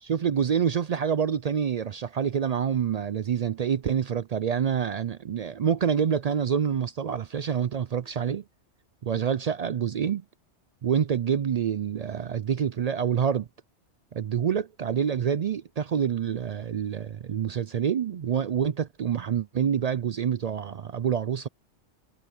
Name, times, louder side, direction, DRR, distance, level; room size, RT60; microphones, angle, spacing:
voice 1, 0.0-8.4 9.0-10.2 10.8-13.5 14.1-21.5, right 8 dB, 65° right, 0.4 m, -27 dB
omnidirectional pair, 1.2 m